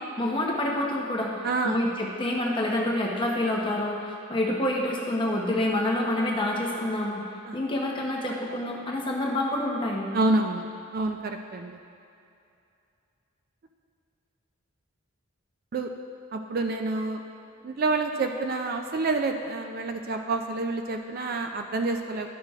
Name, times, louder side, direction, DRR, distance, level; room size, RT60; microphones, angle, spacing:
voice 1, 0.2-7.2 7.5-10.1, left 1 dB, 20° left, -2 dB, 0.8 m, -27 dB
voice 2, 1.4-1.8 7.5-7.6 10.1-10.7 10.9-11.8 15.7-15.9 16.3-17.2 17.6-22.3, right 3 dB, 40° right, 5 dB, 0.3 m, -28 dB
12.0 x 5.6 x 2.4 m, 2.6 s
head